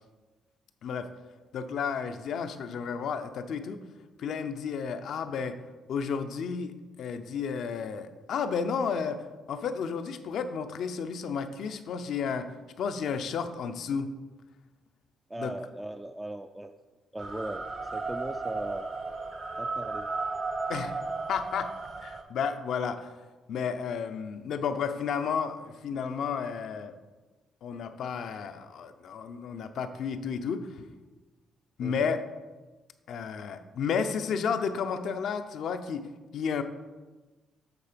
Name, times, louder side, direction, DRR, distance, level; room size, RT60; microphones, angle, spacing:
voice 1, 1.5-3.8 4.2-5.6 5.9-9.2 9.5-12.5 12.8-14.1 15.4-15.5 20.7-21.0 21.3-21.7 22.0-23.1 23.5-26.9 27.6-30.7 31.8-32.2 33.1-36.1 36.3-36.6, left 6 dB, 70° left, 9 dB, 0.6 m, -32 dB
voice 2, 15.3-16.7 17.1-18.9 19.5-20.1 31.8-32.2, right 1 dB, 10° right, 6 dB, 0.3 m, -38 dB
sound 1, 17.2-22.2, right 3 dB, 45° right, 1.0 m, -35 dB
8.3 x 3.8 x 5.1 m, 1.2 s
cardioid pair, 90°, 0 cm